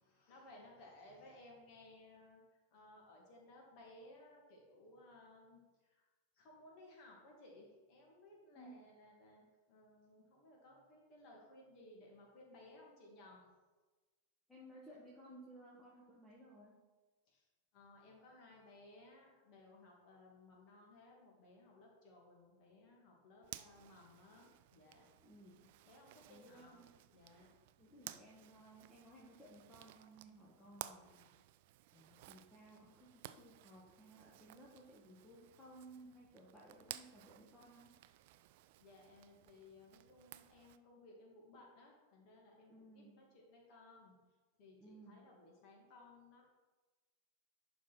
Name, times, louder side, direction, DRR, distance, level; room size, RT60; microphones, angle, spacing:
voice 1, 0.0-6.1 6.3-13.5 17.3-17.4 17.7-25.1 25.9-26.8 27.1-27.5 38.8-44.2 44.6-46.4, left 2 dB, 40° left, -1 dB, 2.4 m, -60 dB
voice 2, 8.6-8.9 14.5-16.8 25.2-25.7 26.3-26.9 27.8-31.3 31.9-37.9 42.7-43.3 44.8-45.3, right 1 dB, 10° left, -6 dB, 1.4 m, -59 dB
Zipper (clothing), 23.4-40.8, right 15 dB, 50° right, 0.3 m, -56 dB
11.0 x 4.0 x 4.3 m, 1.3 s
figure-of-eight pair, 90°, 0 cm